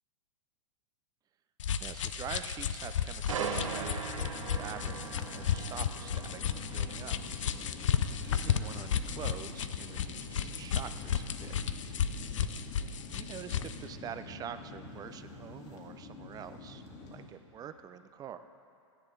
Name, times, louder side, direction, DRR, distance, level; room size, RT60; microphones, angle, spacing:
sound 1, 1.6-13.8, left 8 dB, 75° left, 0.6 m, -33 dB
voice 1, 1.8-4.3 4.6-7.2 8.1-11.6 13.1-16.8 17.1-18.5, right 9 dB, 25° right, 10 dB, 0.5 m, -45 dB
sound 2, 3.3-17.1 17.5-17.8, right 5 dB, 80° right, 1.2 m, -43 dB
sound 3, 4.2-17.3, left 3 dB, 40° left, 2.0 m, -47 dB
14.0 x 10.0 x 4.7 m, 2.5 s
hypercardioid pair, 115°, 16 cm